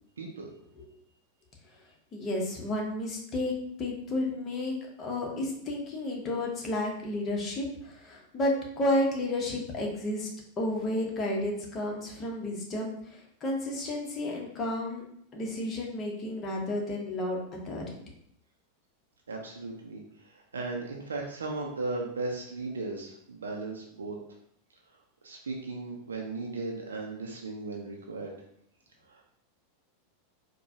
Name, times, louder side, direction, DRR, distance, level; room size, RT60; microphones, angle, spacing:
voice 1, 0.2-0.5 19.3-24.2 25.2-28.4 29.1-29.2, right 3 dB, 75° right, 0 dB, 0.5 m, -36 dB
voice 2, 2.1-3.5 3.8-10.3 10.6-15.0 15.3-17.4 17.6-17.8, left 1 dB, 30° left, -1 dB, 1.0 m, -31 dB
4.4 x 2.2 x 2.8 m, 0.69 s
figure-of-eight pair, 90°, 0 cm